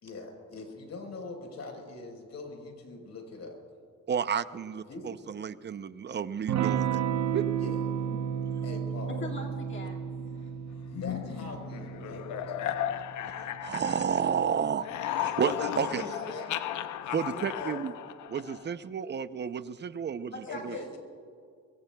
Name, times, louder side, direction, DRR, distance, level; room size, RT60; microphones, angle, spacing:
voice 1, 0.0-3.6 4.9-5.1 7.6-7.8 8.6-9.2 10.8-12.6 15.5-16.6 17.0-17.8 20.5-21.0, left 3 dB, 60° left, 2 dB, 4.4 m, -42 dB
voice 2, 4.1-7.0 7.3-7.7 13.3-16.0 17.1-17.9 18.3-20.8, right 7 dB, 35° right, 13 dB, 0.6 m, -32 dB
Electric guitar / Strum, 6.5-14.8, right 8 dB, 65° right, 0.9 m, -33 dB
voice 3, 9.1-10.5 20.2-21.0, left 2 dB, 40° left, -1 dB, 2.1 m, -42 dB
sound 1, 10.9-14.4 14.7-18.7, left 11 dB, 75° left, 0.8 m, -35 dB
24.0 x 23.0 x 2.3 m, 2.2 s
cardioid pair, 90°, 30 cm